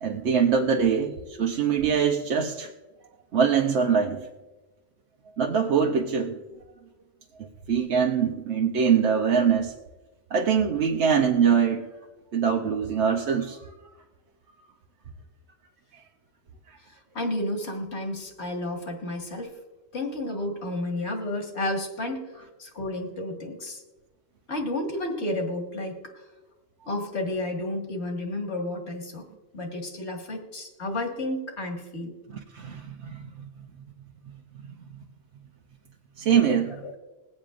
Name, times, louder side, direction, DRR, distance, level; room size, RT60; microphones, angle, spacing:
voice 1, 0.0-2.7 3.3-4.3 5.4-6.4 7.7-9.7 10.3-11.9 12.3-13.8 16.7-16.8 32.3-33.2 36.2-36.8, right 7 dB, 80° right, 2 dB, 1.1 m, -23 dB
voice 2, 17.1-19.5 19.9-22.3 22.6-23.8 24.5-26.0 26.9-29.3 29.5-32.1 36.8-36.9, left 1 dB, 75° left, 2 dB, 1.9 m, -31 dB
21.5 x 8.6 x 2.5 m, 1.2 s
omnidirectional pair, 1.1 m